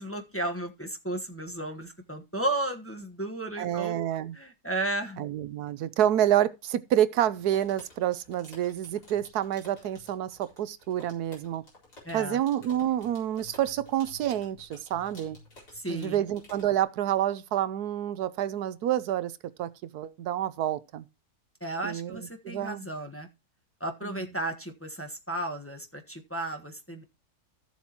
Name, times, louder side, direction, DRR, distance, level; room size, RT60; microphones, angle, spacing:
voice 1, 0.0-4.0 4.3-5.2 12.0-12.4 15.7-16.2 21.6-23.3 23.8-27.0, right 1 dB, 10° left, 1.1 m, -34 dB
voice 2, 3.6-4.4 5.2-11.6 12.1-15.4 15.9-19.3 19.6-21.1 21.8-22.8 24.0-24.2, right 11 dB, 90° right, 1.2 m, -28 dB
sound 1, 7.4-16.8, left 2 dB, 90° left, 4.9 m, -53 dB
15.0 x 7.3 x 2.9 m
omnidirectional pair, 1.6 m